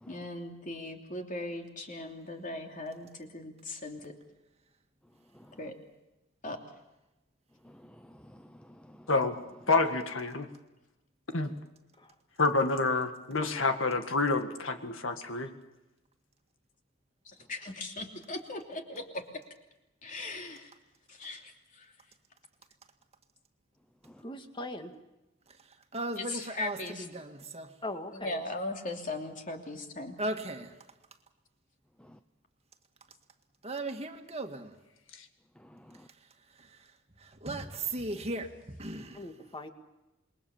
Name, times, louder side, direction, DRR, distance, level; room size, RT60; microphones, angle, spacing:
voice 1, 0.1-4.1 5.6-5.7 6.4-6.6 17.5-19.2 20.0-20.7 21.1-21.9 26.3-27.0 28.1-30.2, left 2 dB, 40° left, 3 dB, 3.0 m, -39 dB
voice 2, 7.6-9.1 24.0-24.2 32.0-32.2 35.6-36.1, equal, 5° left, 8 dB, 0.7 m, -54 dB
voice 3, 9.7-10.5 11.3-11.5 12.4-15.5, left 3 dB, 70° left, 7 dB, 1.9 m, -28 dB
voice 4, 24.2-24.9 27.8-28.4 39.1-39.7, left 1 dB, 25° left, 6 dB, 2.0 m, -40 dB
voice 5, 25.5-27.7 30.2-30.7 33.6-34.8 36.2-36.9 37.2-39.3, right 2 dB, 30° right, 5 dB, 1.9 m, -37 dB
27.5 x 22.0 x 7.2 m, 1.0 s
head